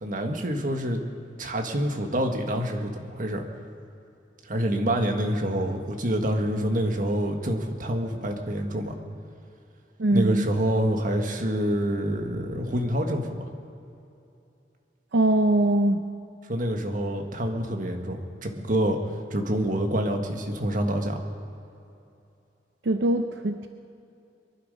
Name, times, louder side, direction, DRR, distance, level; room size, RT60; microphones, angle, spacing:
voice 1, 0.0-1.0 1.4-3.4 4.5-8.9 10.1-13.4 16.5-19.0 19.3-21.2, equal, 50° right, 3 dB, 1.6 m, -27 dB
voice 2, 10.0-10.5 15.1-16.0 22.8-23.7, right 1 dB, 80° right, 6 dB, 0.7 m, -22 dB
23.0 x 12.0 x 5.3 m, 2.7 s
head